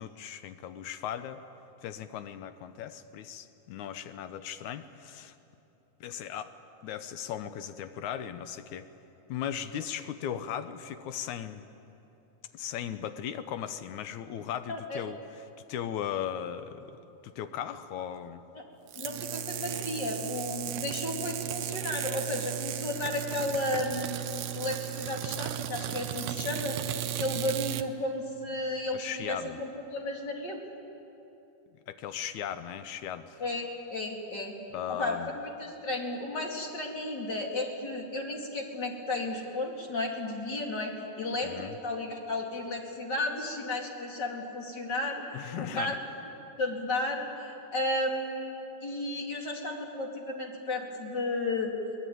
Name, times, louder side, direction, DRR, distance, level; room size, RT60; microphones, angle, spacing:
voice 1, 0.0-1.4 1.8-5.4 6.0-6.5 6.8-8.9 9.3-11.7 12.5-15.2 15.7-17.0 17.2-18.4 28.9-29.6 31.9-33.4 34.7-35.4 41.4-41.8 45.3-46.0, left 9 dB, 75° left, 11 dB, 2.1 m, -37 dB
voice 2, 14.7-15.0 19.0-24.1 24.5-26.8 27.1-30.6 33.4-33.6 33.9-34.6 34.9-45.9 46.6-51.7, left 2 dB, 35° left, 1 dB, 2.8 m, -33 dB
Electric Shock, 18.9-27.9, right 12 dB, 85° right, 1.4 m, -35 dB
23.0 x 19.5 x 9.3 m, 2.9 s
omnidirectional pair, 3.6 m